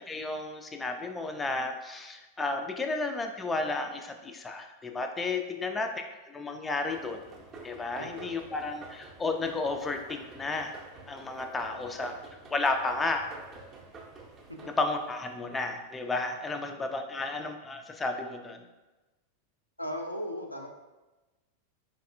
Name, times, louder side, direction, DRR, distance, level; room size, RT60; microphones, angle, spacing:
voice 1, 0.1-5.9 6.3-7.2 7.6-10.8 11.1-12.1 12.5-13.2 14.8-18.6, left 3 dB, 15° left, 4 dB, 0.3 m, -32 dB
sound 1, 6.9-16.0, right 3 dB, 25° right, 0.6 m, -49 dB
voice 2, 8.0-8.4 11.7-12.2 14.5-14.6 17.1-17.4 19.8-20.7, equal, 90° left, 2 dB, 0.4 m, -39 dB
4.0 x 3.2 x 2.5 m, 1.1 s
figure-of-eight pair, 90°, 0 cm